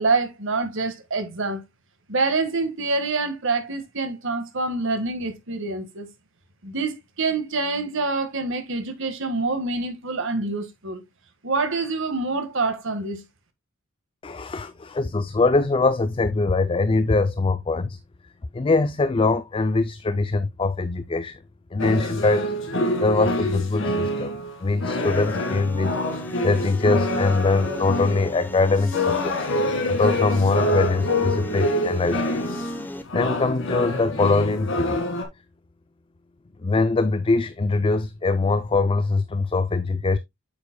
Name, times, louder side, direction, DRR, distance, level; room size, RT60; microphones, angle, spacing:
voice 1, 0.0-1.6 2.1-6.1 6.6-11.0 11.4-13.2, right 3 dB, 65° right, 1.6 m, -26 dB
voice 2, 14.2-18.0 18.5-21.4 21.7-22.5 23.0-24.3 24.6-25.9 26.4-29.4 29.9-32.2 32.5-32.6 33.1-35.0 36.6-40.2, left 3 dB, 25° left, 0.4 m, -22 dB
sound 1, 21.8-32.8 33.1-35.2, left 1 dB, 65° left, 1.9 m, -26 dB
sound 2, 25.0-33.0, equal, 10° left, 0.8 m, -38 dB
8.5 x 7.0 x 2.2 m
head